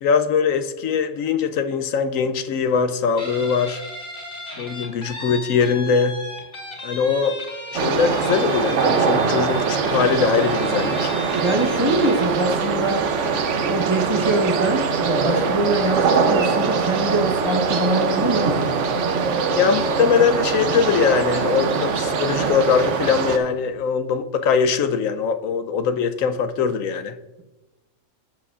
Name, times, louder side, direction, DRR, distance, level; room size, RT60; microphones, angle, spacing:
voice 1, 0.0-3.8 4.6-6.2 6.8-7.4 7.7-11.1 19.6-27.2, left 6 dB, 85° left, 1.0 m, -21 dB
Guitar, 3.2-12.4, left 1 dB, 55° left, 3.7 m, -36 dB
sound 1, 7.7-23.4, right 5 dB, 70° right, 1.1 m, -22 dB
voice 2, 11.4-13.1 13.7-18.9, right 2 dB, 25° right, 1.0 m, -23 dB
13.0 x 8.3 x 2.5 m
omnidirectional pair, 1.3 m